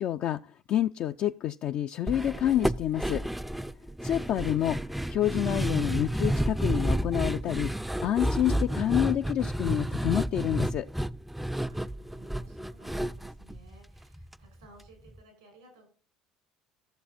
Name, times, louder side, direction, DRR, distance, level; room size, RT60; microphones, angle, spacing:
voice 1, 0.0-3.2 4.0-4.8 5.1-7.7 8.0-10.9, left 11 dB, 55° left, 0.4 m, -28 dB
sound 1, 2.1-14.3 14.6-14.7 15.1-15.2, right 1 dB, 5° right, 0.4 m, -31 dB
voice 2, 11.4-15.9, right 2 dB, 90° right, 6.2 m, -58 dB
12.5 x 7.1 x 4.2 m
hypercardioid pair, 70°, 3 cm